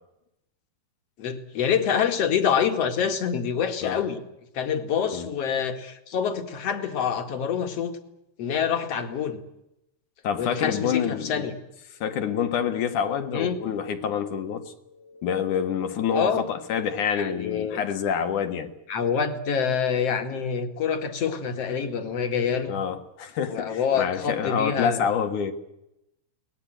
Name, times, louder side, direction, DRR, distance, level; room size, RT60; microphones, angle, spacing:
voice 1, 1.2-4.2 4.5-8.0 8.4-9.4 10.4-11.6 13.3-13.6 16.1-16.4 17.1-17.8 18.9-22.8 23.5-25.1, left 7 dB, 50° left, 2.8 m, -26 dB
voice 2, 10.2-11.5 12.0-18.7 22.7-25.5, left 7 dB, 70° left, 3.1 m, -27 dB
23.0 x 19.5 x 9.1 m
omnidirectional pair, 3.7 m